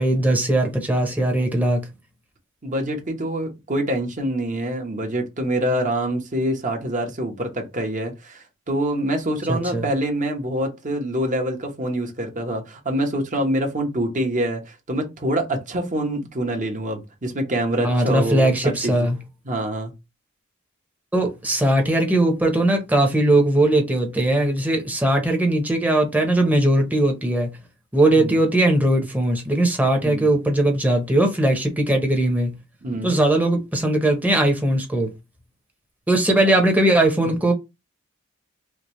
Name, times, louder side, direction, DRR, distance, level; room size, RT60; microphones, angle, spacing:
voice 1, 0.0-1.8 9.5-9.8 17.8-19.2 21.1-27.5 27.9-32.5 33.0-35.1 36.1-37.5, right 1 dB, 10° right, 0.9 m, -19 dB
voice 2, 2.6-19.1 19.4-19.9 28.1-28.4 30.0-30.3 32.8-33.1, right 1 dB, 40° right, 1.1 m, -25 dB
5.0 x 2.4 x 3.1 m
head